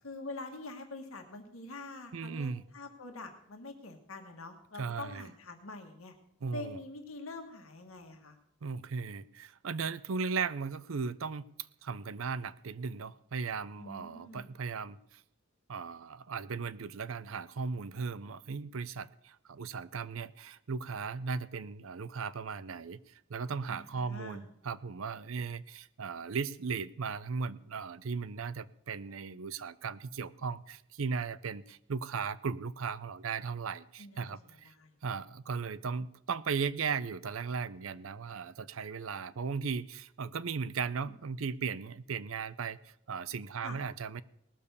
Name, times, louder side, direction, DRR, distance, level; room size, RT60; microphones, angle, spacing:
voice 1, 0.0-6.1 6.5-8.4 13.8-14.5 23.7-24.5 34.0-34.9 41.0-41.1 43.6-43.8, left 2 dB, 90° left, 4 dB, 1.6 m, -45 dB
voice 2, 2.1-2.6 4.8-5.3 6.4-6.8 8.6-11.4 11.8-15.2 15.7-34.7 35.0-44.2, right 5 dB, 80° right, 17 dB, 0.6 m, -37 dB
18.5 x 7.0 x 6.8 m, 0.76 s
head